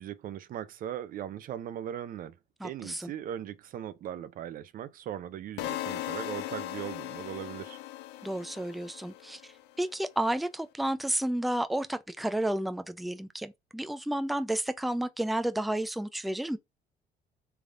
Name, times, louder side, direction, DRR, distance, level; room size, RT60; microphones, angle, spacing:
voice 1, 0.0-2.4 2.6-7.8, right 10 dB, 55° right, 0.5 m, -39 dB
voice 2, 2.6-3.1 8.2-16.6, right 1 dB, ahead, 0.4 m, -31 dB
sound 1, 5.6-9.6, left 15 dB, 90° left, 0.4 m, -38 dB
3.6 x 3.4 x 2.5 m
cardioid pair, 110°, 17 cm